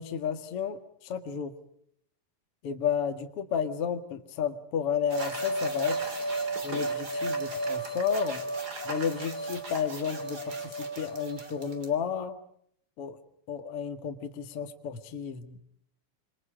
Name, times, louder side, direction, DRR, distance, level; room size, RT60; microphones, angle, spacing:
voice 1, 0.0-1.5 2.6-6.0 6.6-8.4 8.8-12.4 13.0-13.2 13.5-15.6, left 7 dB, 75° left, 6 dB, 1.3 m, -32 dB
sound 1, 5.1-11.9, right 2 dB, 25° right, 2.4 m, -33 dB
27.5 x 26.0 x 5.0 m, 0.69 s
omnidirectional pair, 5.8 m